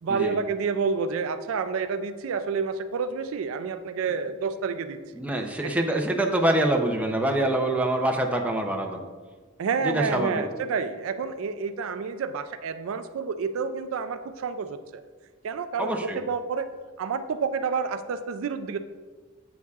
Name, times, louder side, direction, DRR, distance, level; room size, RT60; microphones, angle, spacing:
voice 1, 0.0-5.0 5.6-5.7 9.6-15.0 15.4-16.7 17.0-18.8, right 5 dB, 70° right, 10 dB, 0.4 m, -29 dB
voice 2, 5.1-9.0 9.8-10.4 15.8-16.2, right 1 dB, 5° right, 2 dB, 0.6 m, -25 dB
8.1 x 7.1 x 2.4 m, 1.4 s
head